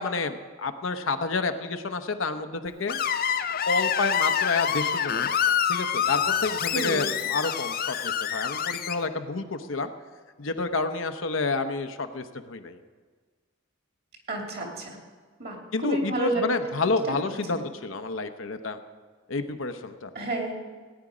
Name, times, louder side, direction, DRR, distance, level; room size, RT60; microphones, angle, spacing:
voice 1, 0.0-3.0 3.7-9.9 10.4-12.8 15.7-18.8 19.3-20.1, left 3 dB, 70° left, 8 dB, 0.9 m, -29 dB
Screech, 2.9-9.0, left 8 dB, 45° left, 0.5 m, -26 dB
voice 2, 6.7-7.1 14.3-15.0 15.4-15.6 15.8-16.4 17.5-17.6 20.1-20.5, right 1 dB, 50° right, 1 dB, 2.7 m, -29 dB
18.0 x 9.7 x 5.0 m, 1.5 s
head